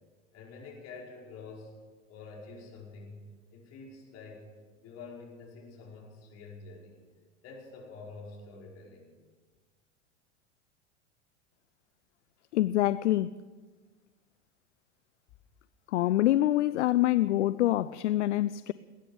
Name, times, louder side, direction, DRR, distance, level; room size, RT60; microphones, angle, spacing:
voice 1, 0.3-1.7 2.1-3.2 3.5-4.5 4.8-7.0 7.4-9.1, left 4 dB, 45° left, 5.4 m, -47 dB
voice 2, 12.5-13.3 15.9-18.7, left 14 dB, 75° left, 0.5 m, -25 dB
20.0 x 10.0 x 7.2 m
hypercardioid pair, 90°, 36 cm